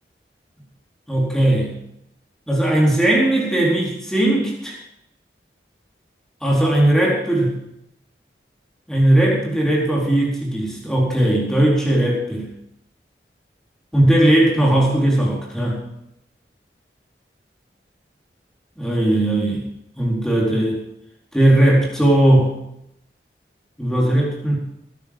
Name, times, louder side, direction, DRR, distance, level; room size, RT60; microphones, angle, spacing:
voice 1, 1.1-1.7 2.5-4.8 6.4-7.6 8.9-12.5 13.9-15.8 18.8-19.6 20.0-20.8 21.3-22.6 23.8-24.6, right 1 dB, 5° left, -4 dB, 4.2 m, -18 dB
18.5 x 10.5 x 5.5 m, 0.80 s
head